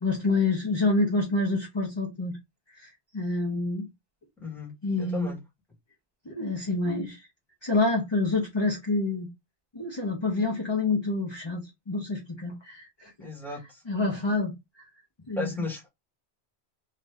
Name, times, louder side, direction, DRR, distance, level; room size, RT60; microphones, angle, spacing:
voice 1, 0.0-2.4 2.8-3.9 4.8-5.4 6.3-7.3 7.6-9.3 9.7-13.1 13.9-14.5 15.3-15.7, left 3 dB, 30° left, 0.7 m, -27 dB
voice 2, 4.4-4.7 5.0-5.4 13.2-13.8 15.4-15.9, left 2 dB, ahead, 1.2 m, -35 dB
2.6 x 2.5 x 3.3 m
omnidirectional pair, 1.1 m